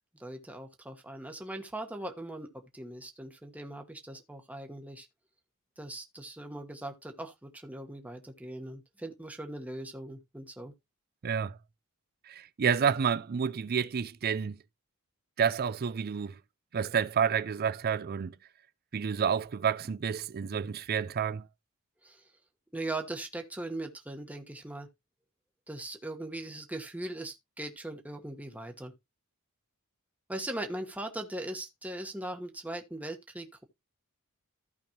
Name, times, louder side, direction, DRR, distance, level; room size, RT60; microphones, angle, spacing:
voice 1, 0.2-5.1 5.8-10.7 22.0-22.2 22.7-24.9 25.7-28.9 30.3-33.6, right 1 dB, 5° right, 1.2 m, -40 dB
voice 2, 11.2-11.5 12.3-14.6 15.4-16.3 16.7-18.3 18.9-21.4, right 7 dB, 45° right, 0.4 m, -29 dB
15.0 x 5.1 x 2.9 m
head